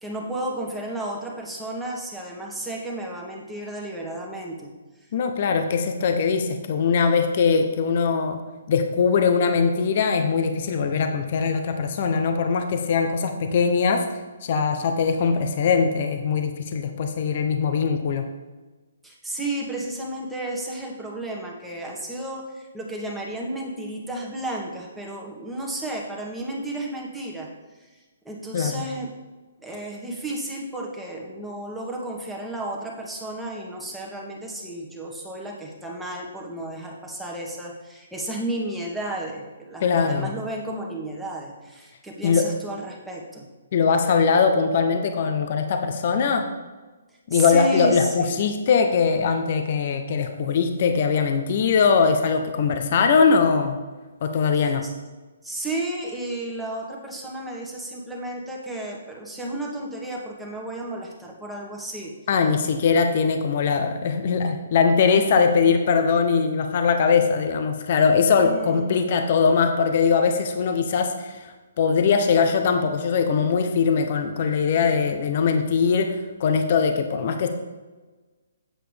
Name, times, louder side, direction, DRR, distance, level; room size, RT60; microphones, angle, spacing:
voice 1, 0.0-4.7 5.0-5.1 19.0-29.1 29.6-43.5 47.3-48.4 54.6-54.9 55.4-62.1 68.3-68.9, right 1 dB, 5° right, -3 dB, 1.5 m, -33 dB
voice 2, 5.1-8.4 8.7-14.0 14.4-18.2 28.5-28.9 39.8-40.3 42.2-42.5 43.7-46.5 47.3-53.8 54.2-54.8 62.3-77.5, left 5 dB, 45° left, 6 dB, 0.7 m, -21 dB
8.7 x 7.5 x 3.4 m, 1.3 s
figure-of-eight pair, 130°, 0 cm